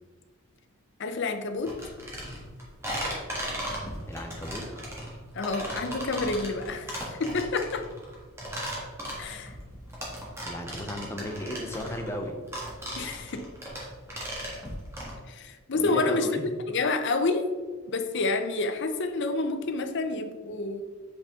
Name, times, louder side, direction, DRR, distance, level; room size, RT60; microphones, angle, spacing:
voice 1, 1.0-1.7 5.3-7.9 9.2-9.6 13.0-13.5 15.3-16.3 16.7-17.5 17.9-20.8, left 3 dB, 55° left, 7 dB, 0.6 m, -29 dB
sound 1, 1.6-15.1, equal, 10° right, 1.5 m, -36 dB
voice 2, 4.0-4.6 10.5-12.4 15.7-16.5, equal, 10° left, 3 dB, 0.7 m, -35 dB
7.8 x 4.2 x 3.7 m, 1.5 s
head